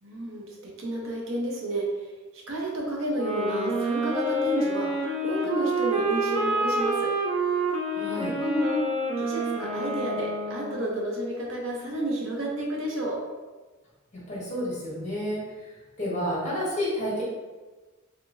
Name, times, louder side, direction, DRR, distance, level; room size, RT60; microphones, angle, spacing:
voice 1, 0.0-1.9 2.3-4.9 5.2-7.1 8.1-8.8 9.2-13.2, right 1 dB, 70° right, -2 dB, 0.8 m, -30 dB
sound 1, 3.1-11.0, right 2 dB, 30° right, 0.5 m, -28 dB
voice 2, 7.9-8.4 14.1-15.5 16.0-17.2, equal, 35° left, -7 dB, 1.2 m, -30 dB
3.5 x 2.9 x 2.5 m, 1.2 s
head